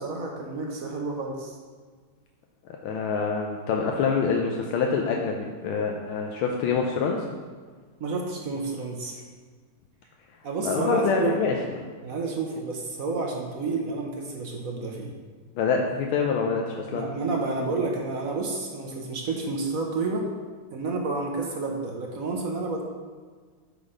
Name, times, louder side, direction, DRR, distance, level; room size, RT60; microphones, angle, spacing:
voice 1, 0.0-1.5 8.0-9.2 10.4-11.5 12.0-15.1 16.9-20.2 20.7-22.8, right 3 dB, 55° right, 1 dB, 1.0 m, -30 dB
voice 2, 2.8-7.2 10.6-11.6 15.6-17.1, left 5 dB, 85° left, 1 dB, 1.5 m, -26 dB
8.5 x 4.0 x 5.0 m, 1.5 s
omnidirectional pair, 2.3 m